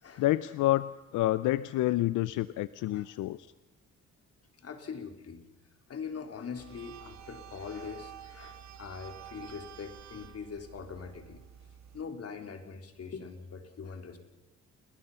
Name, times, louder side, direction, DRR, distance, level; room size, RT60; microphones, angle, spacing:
voice 1, 0.2-3.5, left 15 dB, 85° left, 15 dB, 0.7 m, -28 dB
voice 2, 4.6-5.4 5.9-11.4 11.9-14.2, left 6 dB, 50° left, 5 dB, 3.9 m, -42 dB
sound 1, 6.6-12.0, right 9 dB, 65° right, 1.6 m, -50 dB
29.5 x 21.0 x 5.7 m, 0.97 s
cardioid pair, 90°, 30 cm